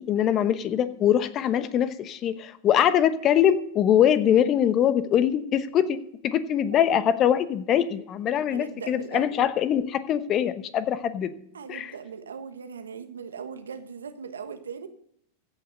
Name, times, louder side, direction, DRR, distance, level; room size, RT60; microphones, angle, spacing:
voice 1, 0.0-11.3 11.7-11.9, left 10 dB, 35° left, 13 dB, 1.0 m, -23 dB
voice 2, 8.5-9.4 11.5-14.9, right 6 dB, 80° right, 8 dB, 1.2 m, -39 dB
15.5 x 5.8 x 6.6 m, 0.71 s
hypercardioid pair, 95°, 0 cm